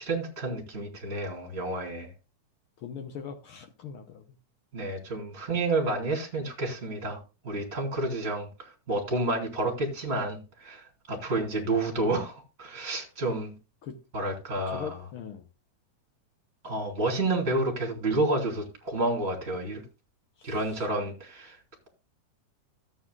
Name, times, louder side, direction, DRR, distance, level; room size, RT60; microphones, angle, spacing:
voice 1, 0.0-2.1 4.7-13.5 14.1-15.0 16.6-19.8 20.4-21.6, right 2 dB, 20° right, 2.9 m, -30 dB
voice 2, 2.8-4.4 11.1-11.2 13.8-13.9 14.7-15.4 20.4-20.9, left 7 dB, 75° left, 1.2 m, -41 dB
14.0 x 8.4 x 2.4 m
omnidirectional pair, 3.7 m